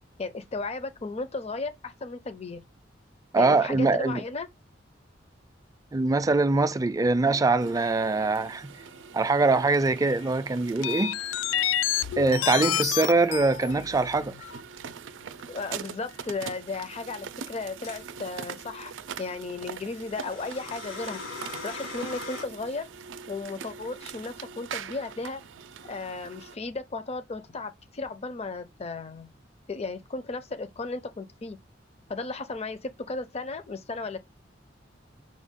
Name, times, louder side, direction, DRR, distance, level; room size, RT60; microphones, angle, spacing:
voice 1, 0.2-2.6 3.4-4.5 15.5-21.2 21.6-22.9 23.3-25.4 25.8-29.3 29.7-31.6 32.1-34.2, left 3 dB, 35° left, 0.5 m, -35 dB
voice 2, 3.3-4.2 5.9-8.7 9.1-11.2 12.2-14.3, right 3 dB, 20° right, 0.4 m, -23 dB
sound 1, 7.0-26.5, right 7 dB, 85° right, 0.4 m, -43 dB
sound 2, 9.7-9.8 10.8-14.6 15.4-15.5 17.5-17.6, left 11 dB, 90° left, 0.3 m, -29 dB
sound 3, 17.8-18.1 19.9-22.4, left 3 dB, 70° left, 1.7 m, -39 dB
6.2 x 2.3 x 3.6 m
head